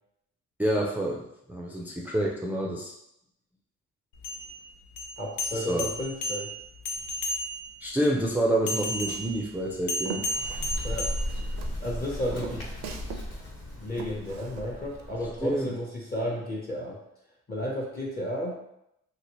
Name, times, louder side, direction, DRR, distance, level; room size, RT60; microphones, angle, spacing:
voice 1, 0.6-1.2 1.5-2.9 5.5-5.9 7.8-10.2 15.4-15.7, right 1 dB, 5° right, -1 dB, 0.4 m, -28 dB
sound 1, 4.1-7.8 8.7-11.8, left 1 dB, 85° left, 0.6 m, -34 dB
voice 2, 5.2-6.5 10.8-11.1 11.8-12.8 13.8-17.0 17.5-18.6, equal, 30° left, -2 dB, 0.7 m, -33 dB
Walk footsteps, 8.7-11.1 11.4-13.3 13.5-15.1, right 7 dB, 65° right, 0.5 m, -42 dB
Bird, 9.9-15.6, equal, 55° left, 1.1 m, -36 dB
2.9 x 2.8 x 2.9 m, 0.81 s
cardioid pair, 90°, 30 cm